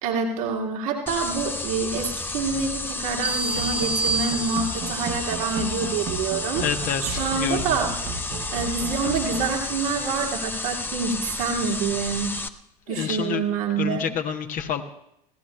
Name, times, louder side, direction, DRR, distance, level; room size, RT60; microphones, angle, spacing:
voice 1, 0.0-6.6 7.0-7.9 8.5-12.4 12.9-14.1, right 5 dB, 70° right, -1 dB, 2.3 m, -27 dB
sound 1, 1.1-12.5, left 3 dB, 10° left, 0.7 m, -31 dB
sound 2, 3.2-5.0, right 4 dB, 10° right, 1.2 m, -28 dB
sound 3, 3.5-9.6, right 4 dB, 55° right, 1.3 m, -35 dB
voice 2, 6.6-7.8 12.9-13.4 13.8-14.8, left 7 dB, 45° left, 5 dB, 1.0 m, -28 dB
25.0 x 16.5 x 2.2 m, 0.77 s
figure-of-eight pair, 65°, 19 cm